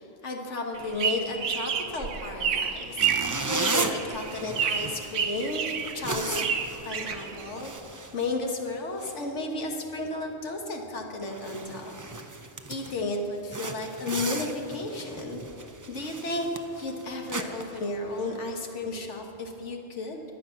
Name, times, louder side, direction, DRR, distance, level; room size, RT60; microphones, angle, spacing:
voice 1, 0.0-6.5 6.8-7.7 8.1-11.9 12.7-15.4 15.9-16.5 16.8-20.2, left 2 dB, 75° left, 2 dB, 1.8 m, -33 dB
sound 1, 0.7-7.8, right 7 dB, 80° right, 1.2 m, -30 dB
sound 2, 3.0-8.7 9.0-9.2 9.7-9.9 10.3-10.4 10.9-11.0 11.2-13.0 13.5-18.5, right 3 dB, 25° right, 0.5 m, -36 dB
20.0 x 8.1 x 5.9 m, 2.9 s
omnidirectional pair, 1.2 m